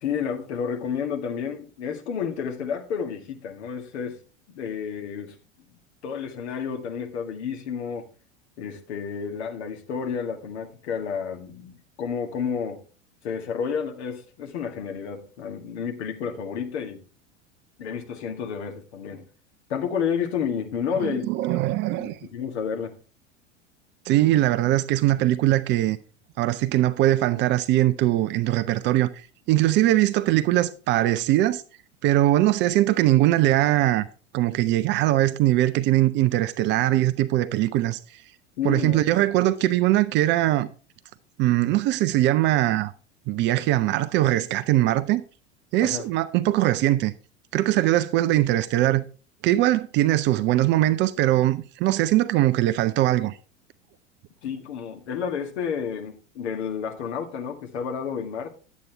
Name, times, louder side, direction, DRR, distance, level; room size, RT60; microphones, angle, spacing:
voice 1, 0.0-4.2 4.5-5.4 6.0-8.1 8.6-12.8 13.2-17.0 17.8-19.3 19.7-21.6 22.0-23.0 38.6-39.0 45.8-46.1 54.4-58.5, left 7 dB, 60° left, 1.8 m, -30 dB
voice 2, 21.0-22.2 24.1-26.0 26.4-29.1 29.5-31.6 32.0-34.0 34.3-38.0 38.6-40.7 41.4-42.9 43.3-45.2 45.7-47.1 47.5-49.0 49.4-53.4, right 15 dB, 30° right, 0.5 m, -21 dB
10.5 x 8.3 x 3.3 m
figure-of-eight pair, 85°, 37 cm